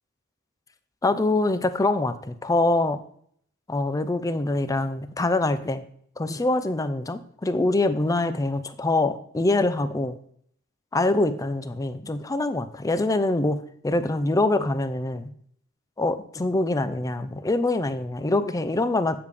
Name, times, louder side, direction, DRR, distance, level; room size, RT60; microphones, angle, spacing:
voice 1, 1.0-3.0 3.7-5.8 6.2-10.2 10.9-13.6 13.8-15.3 16.0-19.2, left 2 dB, 15° left, 12 dB, 0.4 m, -24 dB
8.8 x 4.9 x 3.4 m, 0.64 s
head